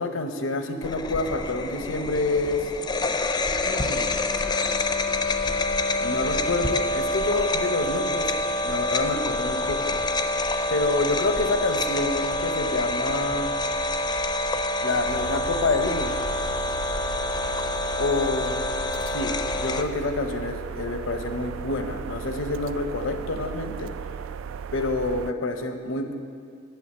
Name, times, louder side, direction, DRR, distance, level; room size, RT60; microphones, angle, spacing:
voice 1, 0.0-2.7 3.7-4.2 6.0-8.3 8.6-10.0 10.7-13.5 14.8-16.2 18.0-18.5 19.1-23.9 24.7-26.1, left 3 dB, 80° left, 6 dB, 0.8 m, -27 dB
sound 1, 0.8-19.8, left 2 dB, 20° left, 0.5 m, -27 dB
sound 2, 15.1-25.3, right 7 dB, 80° right, 0.3 m, -36 dB
9.2 x 7.1 x 8.6 m, 2.3 s
head